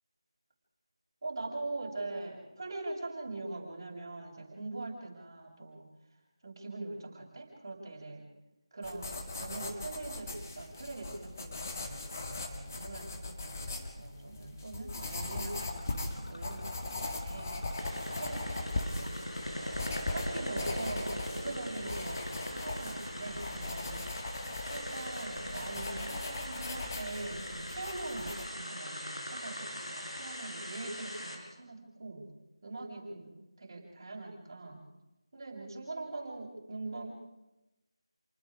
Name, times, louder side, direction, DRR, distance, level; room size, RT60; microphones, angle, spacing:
voice 1, 1.2-5.9 6.4-8.3 8.7-17.9 18.1-19.5 20.1-24.0 24.7-32.3 32.6-33.3 33.6-34.8 35.3-37.1, right 2 dB, 40° right, -3 dB, 7.4 m, -42 dB
sound 1, 8.8-28.5, left 2 dB, 30° left, 2.0 m, -40 dB
sound 2, 15.4-28.7, left 1 dB, 70° left, 2.4 m, -50 dB
sound 3, 17.8-31.4, equal, 85° left, 6.5 m, -40 dB
29.5 x 20.0 x 5.2 m, 0.98 s
figure-of-eight pair, 165°, 3 cm